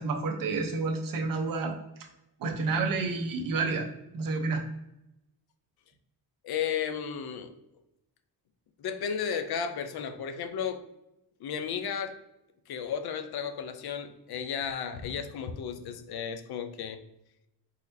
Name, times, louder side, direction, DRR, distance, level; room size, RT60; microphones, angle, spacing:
voice 1, 0.0-1.7 2.4-3.9 4.1-4.6, right 4 dB, 60° right, 1 dB, 0.9 m, -29 dB
voice 2, 6.4-7.5 8.8-10.8 11.4-12.2 12.7-17.0, left 7 dB, 70° left, 9 dB, 0.6 m, -34 dB
4.4 x 4.0 x 2.7 m, 0.89 s
wide cardioid pair, 155°, 39 cm